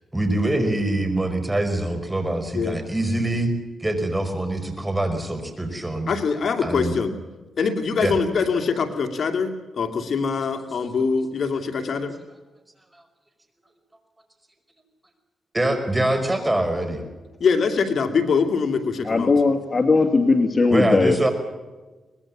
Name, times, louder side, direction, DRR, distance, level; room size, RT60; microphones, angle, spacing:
voice 1, 0.1-3.5 3.8-6.1 6.6-6.9 8.0-8.1 15.5-17.0 20.7-21.3, right 1 dB, 10° right, 7 dB, 5.2 m, -24 dB
voice 2, 6.1-7.2 7.6-12.1 17.4-19.3, left 5 dB, 60° left, 5 dB, 2.5 m, -23 dB
voice 3, 19.0-21.2, left 3 dB, 35° left, 5 dB, 2.3 m, -19 dB
24.0 x 20.5 x 7.4 m, 1.2 s
cardioid pair, 90°, 0 cm